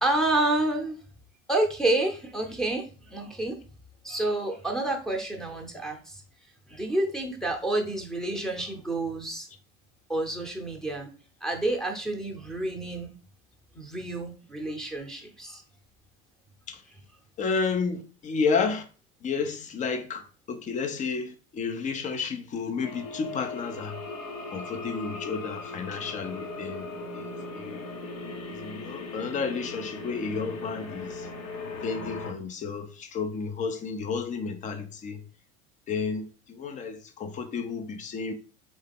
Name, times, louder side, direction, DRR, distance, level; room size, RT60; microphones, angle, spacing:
voice 1, 0.0-1.0 1.5-3.6 4.0-6.2 6.7-9.5 10.1-11.1 11.4-13.1 13.7-15.6, right 2 dB, ahead, 0.8 m, -29 dB
voice 2, 17.4-18.8 19.2-24.0 24.5-26.8 27.1-27.9 28.6-31.3 31.8-35.2 35.9-38.3, left 5 dB, 20° left, 0.5 m, -31 dB
sound 1, 22.8-32.3, left 3 dB, 65° left, 1.0 m, -38 dB
4.1 x 3.7 x 3.5 m
figure-of-eight pair, 75°, 43 cm